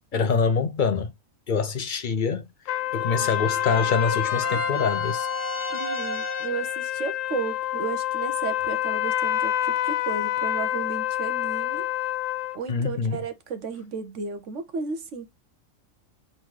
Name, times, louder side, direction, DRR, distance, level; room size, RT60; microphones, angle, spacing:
voice 1, 0.1-1.1 1.5-2.5 2.9-5.3 12.7-13.2, left 5 dB, 50° left, 0.6 m, -25 dB
sound 1, 2.7-12.6, left 13 dB, 75° left, 0.9 m, -27 dB
sound 2, 2.9-6.8, right 2 dB, 20° right, 0.4 m, -35 dB
voice 2, 5.7-11.9 12.5-15.3, right 5 dB, 65° right, 1.3 m, -34 dB
3.9 x 2.6 x 4.7 m
omnidirectional pair, 1.4 m